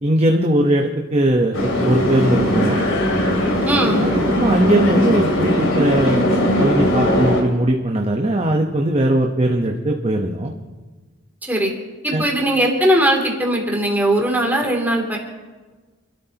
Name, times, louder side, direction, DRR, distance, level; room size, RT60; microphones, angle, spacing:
voice 1, 0.0-2.8 4.0-6.2 6.6-10.5 12.1-12.2, right 1 dB, 30° right, 1 dB, 1.0 m, -19 dB
sound 1, 1.5-7.4, equal, 70° left, 3.5 m, -19 dB
voice 2, 3.7-4.1 11.4-11.7 12.0-15.2, right 1 dB, 10° right, -1 dB, 2.9 m, -19 dB
29.0 x 13.0 x 2.9 m, 1.3 s
head